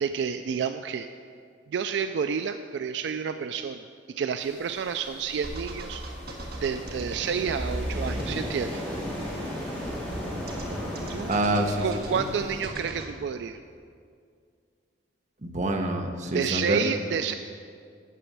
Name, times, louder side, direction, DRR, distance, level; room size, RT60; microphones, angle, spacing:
voice 1, 0.0-1.1 1.7-6.0 6.6-8.8 11.1-11.3 11.8-13.6 16.3-17.3, right 6 dB, 70° right, 8 dB, 0.3 m, -30 dB
sound 1, 4.4-12.7, equal, 10° left, 2.1 m, -37 dB
sound 2, 5.4-13.1, right 1 dB, 55° right, 1.4 m, -37 dB
voice 2, 11.3-12.3 15.4-16.9, right 1 dB, 40° right, 3 dB, 0.9 m, -27 dB
8.4 x 7.0 x 7.3 m, 2.2 s
head